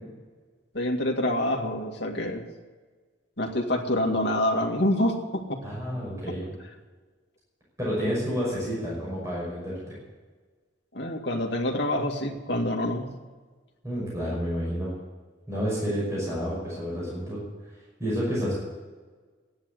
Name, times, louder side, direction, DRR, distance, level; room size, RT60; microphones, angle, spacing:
voice 1, 0.7-2.4 3.4-5.6 10.9-13.0, left 1 dB, 65° left, 2 dB, 2.2 m, -26 dB
voice 2, 5.6-6.5 7.8-10.0 13.8-15.0 15.5-17.4 18.0-18.6, equal, 15° right, -6 dB, 5.7 m, -29 dB
14.5 x 10.0 x 8.0 m, 1.4 s
head